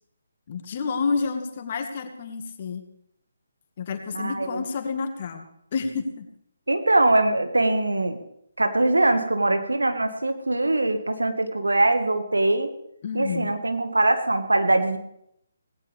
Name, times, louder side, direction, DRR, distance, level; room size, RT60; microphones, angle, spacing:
voice 1, 0.5-2.8 3.8-6.3 13.0-13.5, left 5 dB, 40° left, 6 dB, 1.9 m, -29 dB
voice 2, 4.1-4.6 6.7-8.2 8.6-12.7 13.1-15.0, right 2 dB, 75° right, 7 dB, 1.7 m, -22 dB
18.0 x 17.0 x 3.5 m, 0.76 s
figure-of-eight pair, 145°, 0 cm